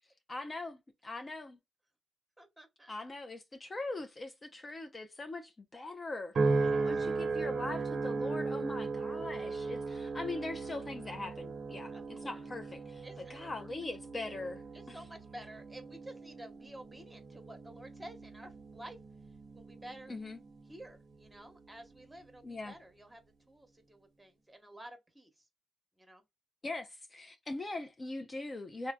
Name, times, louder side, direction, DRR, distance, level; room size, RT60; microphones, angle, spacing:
voice 1, 0.3-1.6 2.9-6.3 6.8-13.0 13.3-15.0 20.1-20.4 22.4-22.7 26.6-28.9, left 2 dB, 35° left, 0.5 m, -41 dB
voice 2, 2.4-2.9 6.6-7.0 11.9-12.4 13.0-13.7 14.7-19.0 19.5-20.2 20.6-23.2 23.5-25.4 26.0-26.2, right 1 dB, 10° right, 1.0 m, -51 dB
sound 1, 6.3-20.8 21.4-21.8, right 4 dB, 55° right, 0.5 m, -37 dB
3.2 x 2.0 x 2.2 m
supercardioid pair, 65°, 0 cm